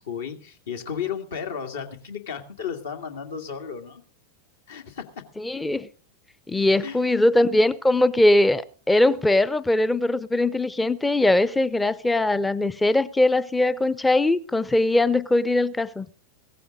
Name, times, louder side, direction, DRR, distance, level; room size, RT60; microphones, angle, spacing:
voice 1, 0.0-4.0 4.7-5.1 6.8-7.0, left 7 dB, 60° left, 2.0 m, -33 dB
voice 2, 5.4-5.9 6.5-16.1, left 1 dB, 10° left, 0.7 m, -21 dB
16.5 x 14.5 x 3.8 m
figure-of-eight pair, 90°, 0 cm